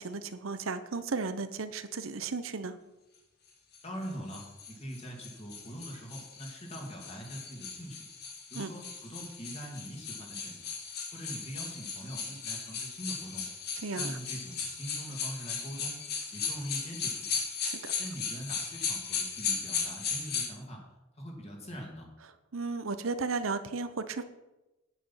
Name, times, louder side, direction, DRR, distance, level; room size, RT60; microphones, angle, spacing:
voice 1, 0.0-2.8 8.5-8.7 13.8-14.2 17.6-17.9 22.5-24.2, right 4 dB, 80° right, 11 dB, 0.8 m, -34 dB
sound 1, 3.7-20.5, left 5 dB, 50° left, 2.0 m, -37 dB
voice 2, 3.8-8.0 8.5-10.7 11.1-13.4 13.9-16.0 16.3-17.4 18.0-20.8 21.2-22.1, equal, 30° left, 0 dB, 2.5 m, -43 dB
9.2 x 8.5 x 5.6 m, 1.0 s
head